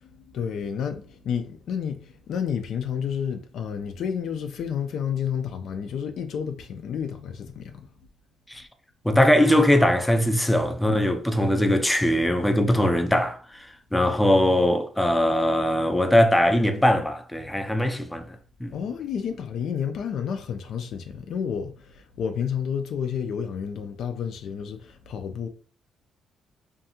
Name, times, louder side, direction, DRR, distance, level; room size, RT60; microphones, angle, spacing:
voice 1, 0.0-7.9 18.7-25.5, left 7 dB, 70° left, 0.3 m, -30 dB
voice 2, 9.0-18.4 18.6-18.7, left 1 dB, 5° left, 0.4 m, -21 dB
2.6 x 2.3 x 2.8 m
cardioid pair, 90°, 0 cm